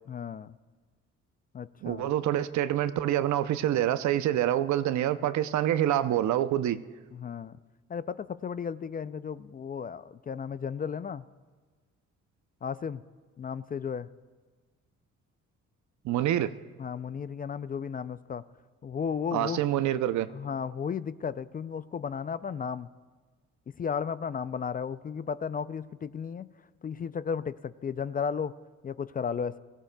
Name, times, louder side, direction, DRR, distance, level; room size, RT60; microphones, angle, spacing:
voice 1, 0.1-0.6 1.5-2.1 7.1-7.6 7.9-11.2 12.6-13.0 13.4-14.1 16.8-18.4 18.8-19.6 20.3-22.9 23.8-26.5 26.8-28.5 28.8-29.6, left 6 dB, 30° left, 0.4 m, -34 dB
voice 2, 1.8-6.8 16.0-16.5 19.3-20.3, right 12 dB, 70° right, 0.6 m, -26 dB
21.5 x 16.0 x 2.3 m
cardioid pair, 90°, 30 cm